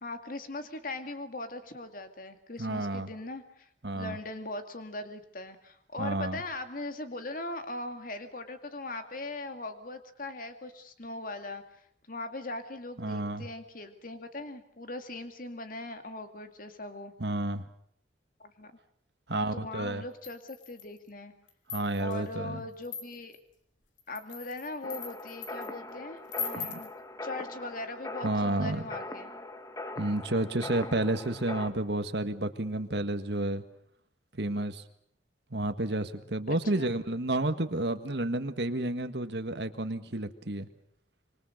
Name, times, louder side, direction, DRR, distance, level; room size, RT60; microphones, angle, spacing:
voice 1, 0.0-3.7 3.9-17.1 18.4-18.7 19.3-21.3 22.0-23.4 24.1-26.9 27.2-29.3 36.5-37.0, left 2 dB, 50° left, 7 dB, 2.3 m, -40 dB
voice 2, 2.6-3.1 3.8-4.2 6.0-6.4 13.0-13.5 17.2-17.6 19.3-20.0 21.7-22.6 26.6-26.7 28.2-28.8 30.0-33.6 34.3-34.8 35.5-40.7, right 1 dB, 65° right, 8 dB, 1.7 m, -31 dB
sound 1, 20.2-21.0 21.5-22.2 22.8-23.4 24.0-25.7 26.3-26.9, left 6 dB, 85° left, 2.8 m, -40 dB
sound 2, 24.8-31.7, left 2 dB, 20° left, 1.6 m, -41 dB
26.0 x 24.0 x 6.6 m, 0.68 s
head